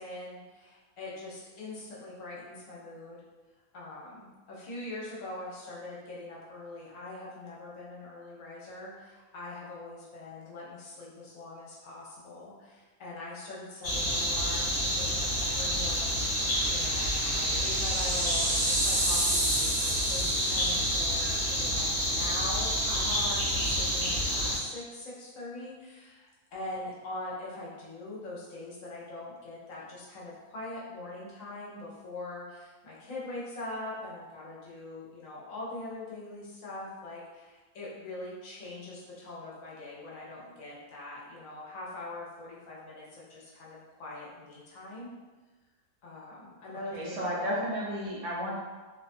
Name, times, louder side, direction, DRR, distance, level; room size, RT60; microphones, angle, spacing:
voice 1, 0.0-3.2 3.7-45.1 46.0-47.2, left 2 dB, 70° left, -6 dB, 1.0 m, -42 dB
sound 1, 13.8-24.6, equal, 40° left, 1.1 m, -29 dB
sound 2, 16.2-20.9, right 1 dB, 40° right, 0.4 m, -32 dB
voice 2, 46.9-48.5, equal, 65° right, -5 dB, 0.9 m, -32 dB
2.6 x 2.3 x 2.4 m, 1.3 s
omnidirectional pair, 1.5 m